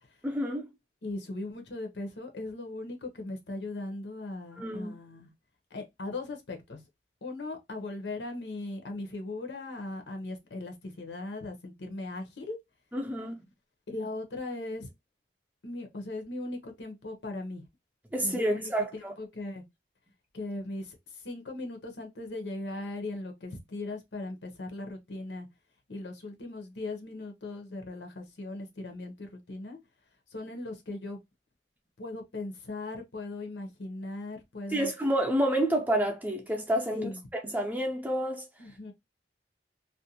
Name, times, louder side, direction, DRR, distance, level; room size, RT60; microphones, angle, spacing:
voice 1, 0.2-0.7 4.6-4.9 12.9-13.4 18.1-19.1 34.7-37.1 37.4-38.5, right 1 dB, 10° right, 0.5 m, -29 dB
voice 2, 1.0-5.3 5.7-6.8 7.2-12.6 13.9-14.9 15.6-17.6 18.2-19.6 20.3-25.5 25.9-29.8 30.3-31.2 32.0-34.9 36.9-37.2 38.6-38.9, left 2 dB, 80° left, 0.7 m, -38 dB
2.5 x 2.1 x 2.7 m
head